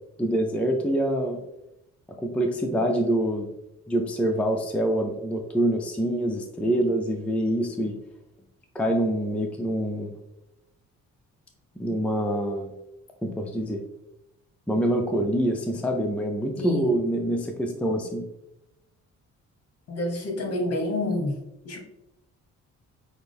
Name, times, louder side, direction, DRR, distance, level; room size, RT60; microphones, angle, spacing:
voice 1, 0.2-1.4 2.2-3.5 3.9-8.0 8.7-10.1 11.8-12.7 13.2-13.8 14.7-18.3, right 1 dB, 5° left, 3 dB, 0.5 m, -25 dB
voice 2, 16.6-16.9 19.9-21.4 21.6-21.8, left 1 dB, 55° left, 2 dB, 1.2 m, -28 dB
6.0 x 2.0 x 3.5 m, 0.88 s
cardioid pair, 90°, 30 cm